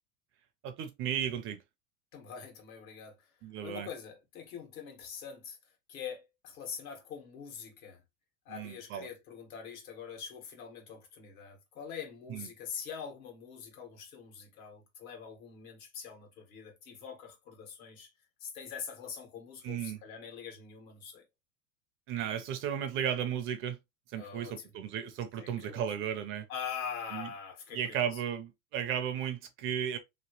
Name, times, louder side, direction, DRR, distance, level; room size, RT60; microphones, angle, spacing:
voice 1, 0.6-1.6 3.4-3.9 8.5-9.1 12.3-12.5 19.6-20.0 22.1-23.8 24.1-26.4 27.1-27.3 27.7-30.0, right 9 dB, 30° right, 0.4 m, -34 dB
voice 2, 2.1-3.3 3.6-5.6 5.9-8.0 8.4-18.1 18.4-21.2 24.1-24.7 25.4-25.8 26.5-28.0, left 7 dB, 80° left, 1.5 m, -44 dB
2.9 x 2.8 x 2.9 m
supercardioid pair, 130°, 41 cm